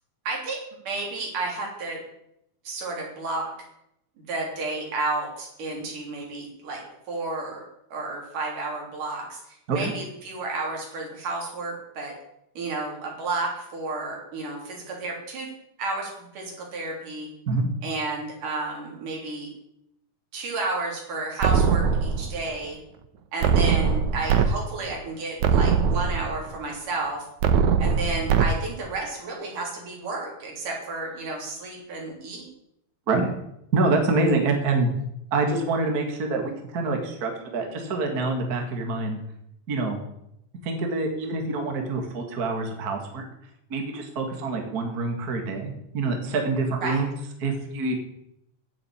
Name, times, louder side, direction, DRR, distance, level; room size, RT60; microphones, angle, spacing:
voice 1, 0.3-0.6 0.8-2.0 2.6-3.5 4.2-7.6 7.9-12.1 12.6-15.5 15.8-17.3 17.8-19.5 20.3-22.8 23.3-27.2 27.8-32.5 46.8-47.0, right 3 dB, 90° right, -1 dB, 4.9 m, -32 dB
sound 1, 21.4-22.4 23.4-24.5 24.9-25.0 25.4-26.4 27.4-28.5, right 6 dB, 75° right, 2.3 m, -21 dB
voice 2, 33.7-34.9 35.3-39.2 39.7-40.0 40.6-43.2 43.7-47.1 47.4-48.0, right 3 dB, 35° right, 3 dB, 2.0 m, -26 dB
9.8 x 8.0 x 8.7 m, 0.80 s
omnidirectional pair, 3.6 m